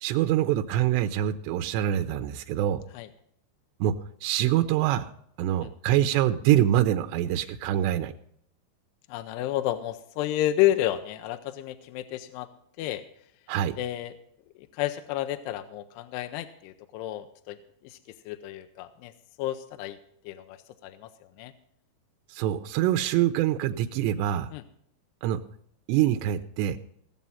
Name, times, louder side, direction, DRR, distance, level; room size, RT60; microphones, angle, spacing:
voice 1, 0.0-2.8 3.8-3.9 4.2-5.1 5.4-8.1 13.5-13.7 22.3-24.5 25.2-25.4 25.9-26.8, right 12 dB, 85° right, 7 dB, 2.8 m, -25 dB
voice 2, 9.1-12.5 12.8-13.0 13.8-14.1 14.7-17.6 17.8-18.0 18.3-19.1 19.4-20.0 20.2-21.5 24.5-24.6, left 13 dB, 80° left, 9 dB, 2.7 m, -31 dB
18.0 x 7.4 x 5.5 m, 0.70 s
omnidirectional pair, 5.0 m